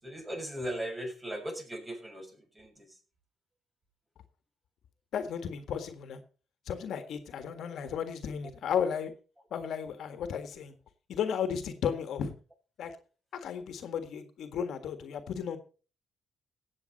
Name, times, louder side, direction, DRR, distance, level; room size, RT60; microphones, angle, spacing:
voice 1, 0.0-3.0, right 1 dB, 20° right, 2 dB, 6.7 m, -38 dB
voice 2, 5.1-6.2 6.7-9.1 9.5-10.7 11.1-12.3 12.8-13.0 13.3-15.6, left 7 dB, 70° left, 8 dB, 1.7 m, -34 dB
17.0 x 7.6 x 4.1 m, 0.36 s
cardioid pair, 90°, 0 cm